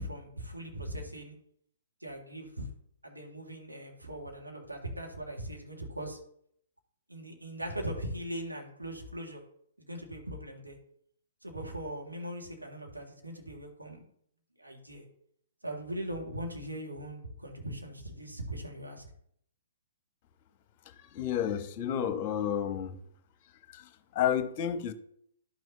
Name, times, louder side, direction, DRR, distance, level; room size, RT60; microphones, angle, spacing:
voice 1, 0.0-1.3 2.0-2.7 3.0-6.2 7.1-9.4 9.8-10.8 11.4-14.1 14.6-15.0 15.6-19.1, right 1 dB, 90° right, 0 dB, 1.9 m, -40 dB
voice 2, 21.0-23.0 23.7-24.9, left 9 dB, 35° left, 10 dB, 0.9 m, -31 dB
11.5 x 6.1 x 2.7 m, 0.68 s
figure-of-eight pair, 120°, 0 cm